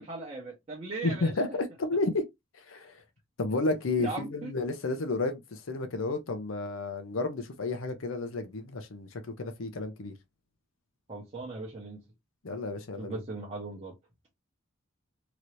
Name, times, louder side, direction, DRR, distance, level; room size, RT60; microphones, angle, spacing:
voice 1, 0.0-1.3 4.0-4.5 11.1-12.0 13.0-13.9, right 3 dB, 30° right, 0.9 m, -38 dB
voice 2, 1.0-2.3 2.5-3.0 3.4-10.1 12.4-13.2, left 3 dB, 80° left, 0.7 m, -32 dB
3.0 x 2.6 x 3.0 m
head